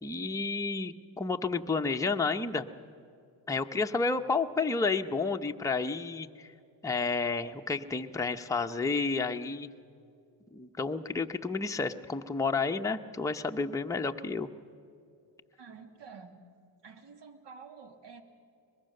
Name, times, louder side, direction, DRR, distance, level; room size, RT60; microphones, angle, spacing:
voice 1, 0.0-2.7 3.5-6.5 6.8-9.7 10.5-14.5, left 4 dB, 5° left, 4 dB, 0.8 m, -31 dB
voice 2, 15.6-16.4 16.8-18.2, right 5 dB, 65° right, 7 dB, 2.2 m, -49 dB
23.0 x 21.0 x 6.6 m, 2.5 s
cardioid pair, 95°, 46 cm